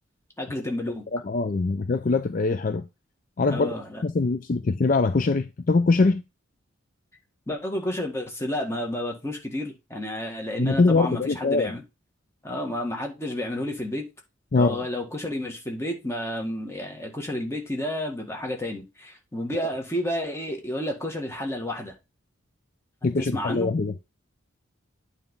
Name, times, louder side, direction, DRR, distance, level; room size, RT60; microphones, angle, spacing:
voice 1, 0.4-1.0 3.5-4.0 7.5-11.8 12.4-14.0 14.5-21.9 23.2-23.7, left 1 dB, 15° left, 1.7 m, -31 dB
voice 2, 1.1-2.8 3.4-3.7 4.0-6.2 10.6-11.8 14.5-14.8 19.5-19.7 23.0-23.9, left 3 dB, 45° left, 0.4 m, -23 dB
9.1 x 3.3 x 5.4 m
head